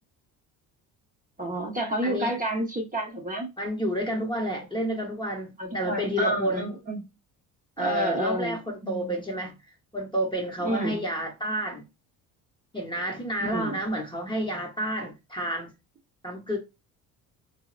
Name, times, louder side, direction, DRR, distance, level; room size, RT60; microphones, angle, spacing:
voice 1, 1.4-3.5 5.6-7.0 7.8-9.2 10.6-11.0 13.5-13.8, right 1 dB, 20° right, 0.8 m, -30 dB
voice 2, 2.0-2.4 3.6-6.7 7.8-9.6 9.9-11.8 12.7-15.7 16.2-16.6, equal, 10° left, 0.8 m, -30 dB
3.4 x 2.1 x 2.4 m
supercardioid pair, 75°, 42 cm